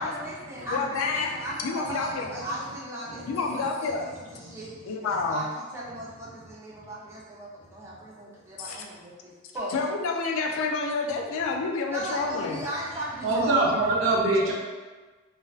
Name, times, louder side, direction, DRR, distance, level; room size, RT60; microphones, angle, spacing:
voice 1, 0.0-9.7 11.9-13.6, right 1 dB, 15° right, -7 dB, 0.5 m, -37 dB
voice 2, 0.7-1.4 1.6-2.3 3.3-4.1 4.9-5.4 8.6-8.9 9.7-12.6, left 4 dB, 80° left, 3 dB, 0.3 m, -29 dB
voice 3, 13.2-14.5, right 2 dB, 70° right, -2 dB, 0.5 m, -24 dB
2.4 x 2.2 x 2.3 m, 1.3 s
head